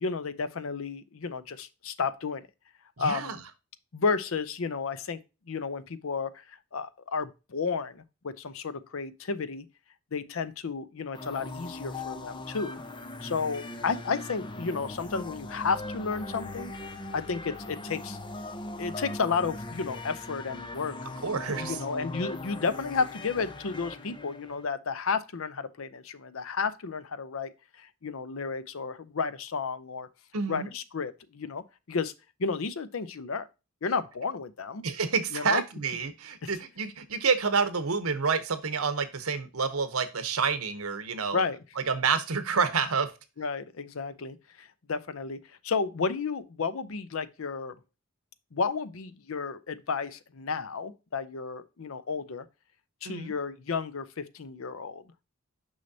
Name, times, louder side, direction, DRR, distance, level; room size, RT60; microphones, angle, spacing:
voice 1, 0.0-2.4 3.0-3.4 3.9-5.2 5.5-9.6 10.1-12.8 13.2-16.7 17.1-18.2 18.8-20.9 21.7-27.5 27.8-30.1 30.5-32.1 32.4-33.5 33.8-34.8 35.3-35.6 36.4-36.5 41.3-41.6 43.4-47.8 48.5-52.5 53.0-55.0, left 5 dB, 70° left, 0.6 m, -32 dB
voice 2, 3.0-3.4 21.2-21.8 30.3-30.7 34.8-41.4 41.8-43.1 53.0-53.3, right 5 dB, 90° right, 1.0 m, -28 dB
sound 1, 11.1-24.7, left 2 dB, 20° left, 0.6 m, -40 dB
6.3 x 5.6 x 2.7 m
head